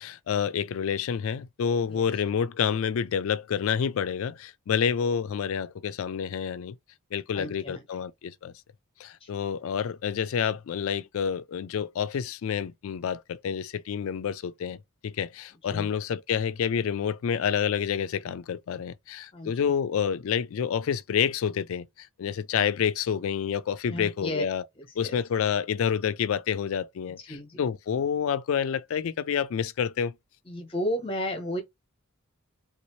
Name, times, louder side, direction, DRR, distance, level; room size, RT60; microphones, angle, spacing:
voice 1, 0.0-6.8 7.1-8.5 9.0-24.6 25.0-30.1, left 7 dB, 65° left, 0.3 m, -28 dB
voice 2, 7.3-7.8 9.2-9.4 15.7-15.9 19.3-19.7 23.9-24.4 24.8-25.2 27.3-27.6 30.5-31.6, left 1 dB, 25° left, 0.9 m, -33 dB
3.5 x 2.7 x 3.1 m
head